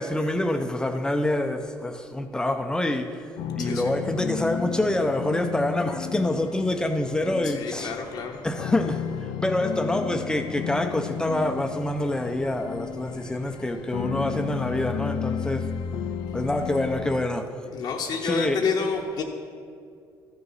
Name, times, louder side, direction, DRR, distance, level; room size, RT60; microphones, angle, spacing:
voice 1, 0.0-3.3 3.6-7.9 8.4-9.0 9.4-15.6 16.3-17.4 18.2-18.7, left 1 dB, 10° left, 0.6 m, -26 dB
sound 1, 3.4-17.3, left 8 dB, 85° left, 0.5 m, -33 dB
voice 2, 3.6-4.0 7.4-8.4 17.7-19.2, left 5 dB, 65° left, 0.9 m, -29 dB
14.0 x 6.9 x 4.1 m
cardioid pair, 120°, 8 cm